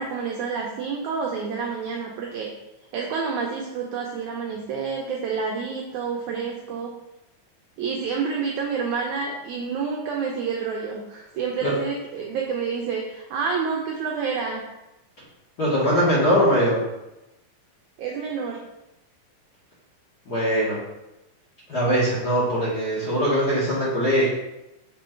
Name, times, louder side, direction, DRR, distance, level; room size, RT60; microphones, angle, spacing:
voice 1, 0.0-2.5 2.9-6.9 7.8-14.6 18.0-18.6, right 5 dB, 90° right, 0 dB, 1.7 m, -28 dB
voice 2, 15.6-16.8 20.3-20.8 21.7-24.3, equal, 55° left, -8 dB, 1.0 m, -21 dB
6.2 x 3.8 x 4.5 m, 0.95 s
omnidirectional pair, 4.1 m